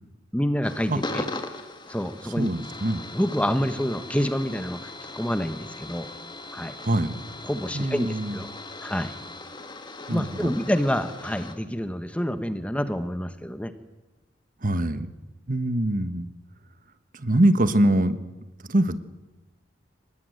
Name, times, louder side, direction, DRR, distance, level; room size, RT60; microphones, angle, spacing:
voice 1, 0.3-1.2 1.9-2.5 3.1-6.1 6.5-6.7 7.4-8.5 8.8-9.1 10.1-13.7, equal, 5° left, 10 dB, 1.2 m, -27 dB
sound 1, 0.6-11.6, left 2 dB, 25° left, 2.0 m, -39 dB
voice 2, 2.4-3.0 6.8-7.2 7.7-8.4 10.1-10.5 14.6-15.1 15.5-16.3 17.1-18.2 18.7-19.0, right 1 dB, 45° right, 12 dB, 1.4 m, -23 dB
24.5 x 19.5 x 9.3 m, 1.1 s
head